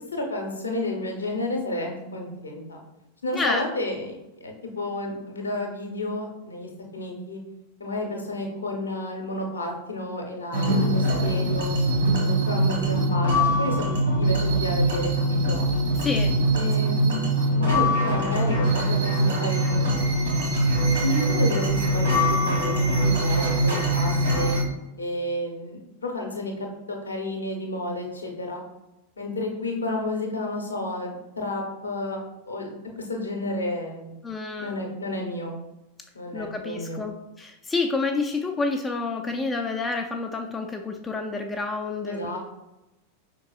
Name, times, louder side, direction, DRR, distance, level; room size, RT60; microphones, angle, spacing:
voice 1, 0.1-2.8 3.2-7.4 7.8-11.7 12.2-15.7 16.5-17.3 17.5-20.0 21.0-24.6 25.0-28.6 29.2-34.1 34.6-35.6 36.1-37.0 42.1-42.4, left 2 dB, 70° left, 1 dB, 0.7 m, -31 dB
voice 2, 3.3-3.6 16.0-16.4 34.2-34.7 36.3-42.4, left 3 dB, 15° left, 3 dB, 0.3 m, -29 dB
sound 1, 10.5-24.6, right 1 dB, 70° right, 1.4 m, -22 dB
5.2 x 3.7 x 2.3 m, 0.97 s
figure-of-eight pair, 90°, 0 cm